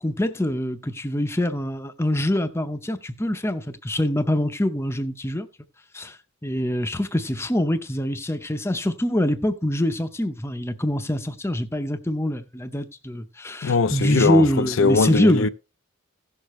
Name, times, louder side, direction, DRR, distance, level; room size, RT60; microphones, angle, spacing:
voice 1, 0.0-5.5 5.9-6.2 6.4-15.5, equal, 10° left, 0.7 m, -24 dB
voice 2, 13.6-15.5, left 4 dB, 65° left, 0.5 m, -20 dB
16.0 x 6.6 x 3.1 m
head